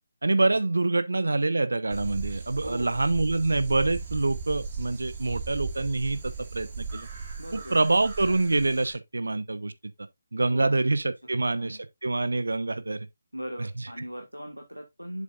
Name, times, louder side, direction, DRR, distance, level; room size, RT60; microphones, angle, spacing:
voice 1, 0.2-7.1 7.7-9.7 10.3-13.1, right 2 dB, 65° right, 1.0 m, -26 dB
sound 1, 1.9-8.9, right 5 dB, 30° right, 2.5 m, -37 dB
voice 2, 2.6-3.0 7.4-7.8 10.5-10.8 11.4-11.8 13.3-15.2, equal, 90° right, 1.9 m, -39 dB
7.7 x 7.3 x 2.5 m
figure-of-eight pair, 150°, 0 cm